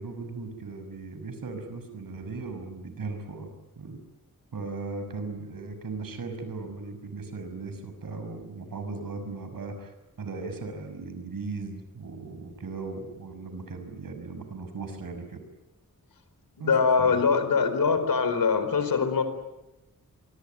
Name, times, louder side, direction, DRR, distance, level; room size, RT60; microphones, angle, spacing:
voice 1, 0.0-3.5 3.8-4.0 4.5-15.4 16.6-17.2, right 3 dB, 80° right, 8 dB, 6.0 m, -37 dB
voice 2, 16.6-19.2, left 5 dB, 90° left, 9 dB, 4.6 m, -23 dB
25.5 x 24.0 x 9.4 m, 0.98 s
wide cardioid pair, 130°, 33 cm